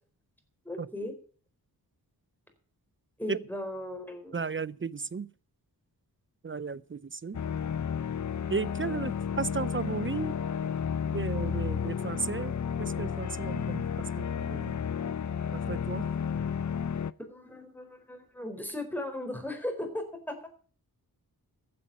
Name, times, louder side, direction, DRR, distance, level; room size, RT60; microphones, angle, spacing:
voice 1, 0.6-1.1 3.2-4.4 17.3-20.4, left 1 dB, 5° left, 4.4 m, -37 dB
voice 2, 4.3-5.3 6.4-7.4 8.5-10.3 11.1-12.5 12.8-13.8 14.2-14.7 15.5-16.1, right 5 dB, 30° right, 0.5 m, -34 dB
sound 1, 7.3-17.1, left 7 dB, 50° left, 0.7 m, -32 dB
15.0 x 8.6 x 5.7 m
wide cardioid pair, 100°, 38 cm